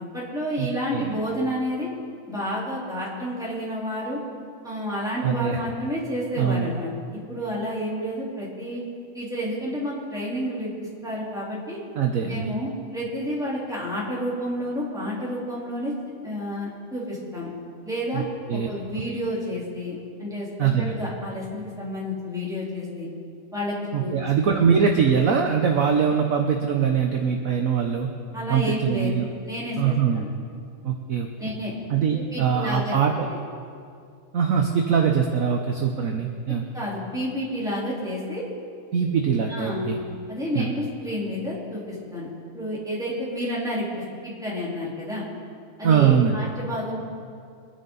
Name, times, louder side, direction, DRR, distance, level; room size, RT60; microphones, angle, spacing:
voice 1, 0.1-1.9 2.3-4.2 4.6-6.9 7.3-8.8 9.1-10.7 11.0-11.8 12.2-15.9 16.2-17.5 17.8-18.2 18.5-23.1 23.5-24.1 24.5-24.6 28.3-29.1 29.4-30.3 31.4-31.7 32.1-33.0 36.7-38.4 39.5-40.0 40.3-42.3 42.5-45.2 45.8-47.0, equal, ahead, -8 dB, 3.8 m, -30 dB
voice 2, 5.2-5.6 6.4-6.7 12.0-12.5 18.1-18.7 20.6-20.9 23.9-28.1 28.5-29.3 29.8-30.3 30.8-31.5 31.9-33.1 34.3-36.6 38.9-40.0 40.5-40.7 45.8-46.4, right 7 dB, 50° right, 2 dB, 1.1 m, -22 dB
24.0 x 10.0 x 4.0 m, 2.3 s
omnidirectional pair, 2.3 m